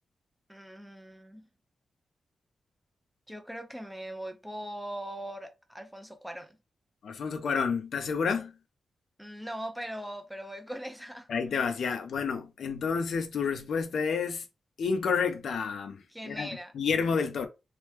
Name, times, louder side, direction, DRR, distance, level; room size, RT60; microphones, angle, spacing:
voice 1, 0.5-1.5 3.3-6.6 9.2-11.3 16.1-16.7, right 1 dB, ahead, 0.4 m, -40 dB
voice 2, 7.0-8.5 11.3-14.4 14.8-16.5 16.7-17.5, left 5 dB, 70° left, 0.5 m, -30 dB
3.0 x 2.1 x 3.2 m
wide cardioid pair, 155°, 0 cm